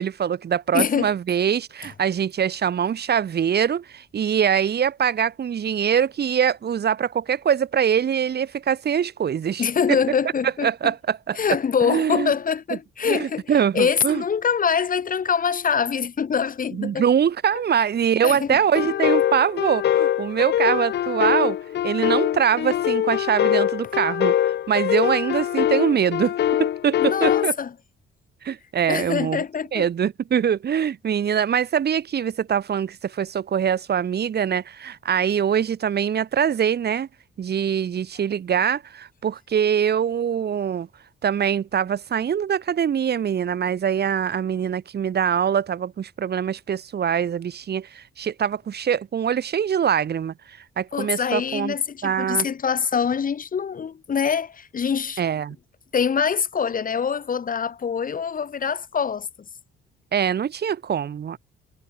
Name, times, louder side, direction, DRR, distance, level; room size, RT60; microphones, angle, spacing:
voice 1, 0.0-10.0 10.4-11.4 11.8-12.3 13.0-14.2 16.7-21.6 21.8-26.3 26.6-27.6 28.4-29.4 29.7-37.1 37.4-40.9 41.2-51.8 52.0-52.5 55.2-55.6 60.1-61.4, right 8 dB, 55° right, 4.0 m, -23 dB
voice 2, 0.7-1.1 9.6-10.9 11.4-13.4 13.7-17.0 18.2-18.6 27.0-27.7 28.9-29.8 50.9-55.2 55.9-59.3, left 7 dB, 45° left, 2.3 m, -24 dB
sound 1, 18.7-27.5, left 11 dB, 60° left, 0.8 m, -23 dB
cardioid pair, 90°, 20 cm